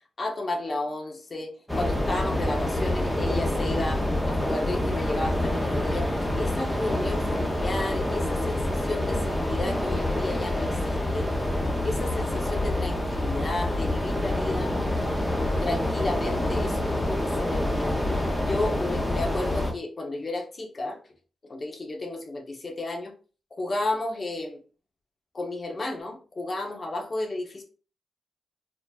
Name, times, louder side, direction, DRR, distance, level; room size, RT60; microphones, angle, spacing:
voice 1, 0.2-11.3 11.8-14.8 15.6-18.0 18.4-21.0 21.5-23.1 23.6-24.6 25.3-27.6, left 2 dB, 35° left, 1.0 m, -32 dB
sound 1, 1.7-19.7, left 1 dB, 10° left, 0.8 m, -27 dB
4.1 x 2.7 x 2.5 m
cardioid pair, 90°, 0 cm